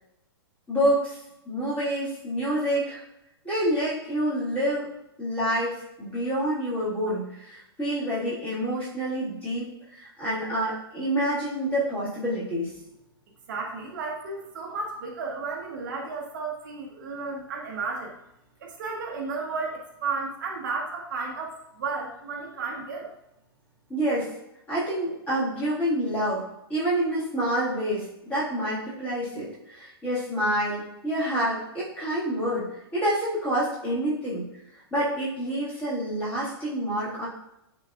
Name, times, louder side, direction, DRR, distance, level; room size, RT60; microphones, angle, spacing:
voice 1, 0.7-1.2 1.5-3.0 3.4-4.9 5.2-9.7 9.9-12.7 23.9-24.3 24.7-26.4 26.7-32.7 32.9-34.5 34.9-37.3, right 1 dB, 10° left, -9 dB, 1.8 m, -27 dB
voice 2, 13.5-18.1 18.6-23.1, right 4 dB, 45° right, 0 dB, 0.9 m, -33 dB
10.0 x 4.0 x 2.4 m, 0.85 s
hypercardioid pair, 180°, 14 cm